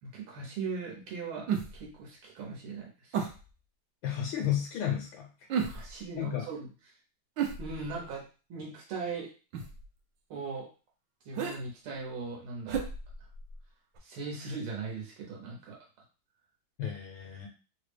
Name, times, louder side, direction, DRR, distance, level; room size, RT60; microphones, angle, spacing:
voice 1, 0.0-3.2 5.7-6.7 7.6-8.2 8.5-9.3 10.3-10.7 11.3-12.8 14.0-15.8, right 4 dB, 90° right, -2 dB, 1.7 m, -39 dB
sound 1, 1.5-1.9 3.1-3.5 5.5-6.1 7.4-8.2 9.5-9.9 11.3-11.6 12.7-13.6 14.0-14.1, right 7 dB, 75° right, 1.2 m, -33 dB
voice 2, 4.0-5.5 6.2-6.5 16.8-17.5, left 10 dB, 75° left, 1 dB, 1.3 m, -33 dB
3.8 x 2.0 x 3.2 m, 0.35 s
omnidirectional pair, 2.3 m